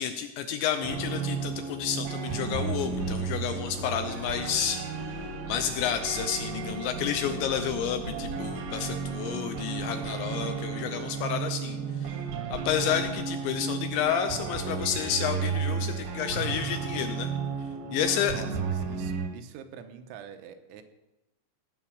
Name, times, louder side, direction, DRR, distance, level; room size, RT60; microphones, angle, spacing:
voice 1, 0.0-5.2 5.5-12.2 12.5-17.3 17.9-18.3, left 8 dB, 80° left, 7 dB, 2.7 m, -30 dB
sound 1, 0.8-19.3, right 5 dB, 70° right, 2.4 m, -33 dB
sound 2, 2.3-9.3, right 1 dB, 55° left, 2.1 m, -44 dB
voice 2, 18.2-20.8, right 8 dB, 90° right, 8 dB, 3.7 m, -45 dB
17.5 x 8.6 x 6.4 m, 0.98 s
omnidirectional pair, 5.9 m